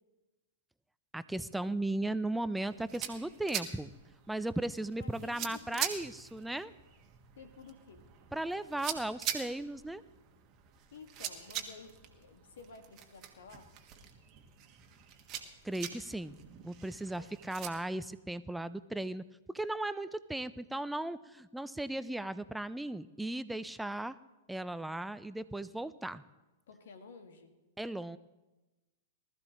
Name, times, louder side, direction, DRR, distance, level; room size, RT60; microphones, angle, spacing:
voice 1, 1.1-3.9 4.3-6.7 8.3-10.0 15.6-16.4 16.6-19.2 19.5-24.2 24.5-26.2 27.8-28.2, right 1 dB, 5° right, 15 dB, 0.5 m, -36 dB
sound 1, 2.6-17.7, right 10 dB, 35° right, 1.4 m, -43 dB
voice 2, 5.0-6.0 7.3-8.0 10.9-13.7 17.2-17.3 26.7-27.5, left 5 dB, 65° left, 6 dB, 1.7 m, -52 dB
19.5 x 13.5 x 3.0 m, 1.1 s
figure-of-eight pair, 105°, 0 cm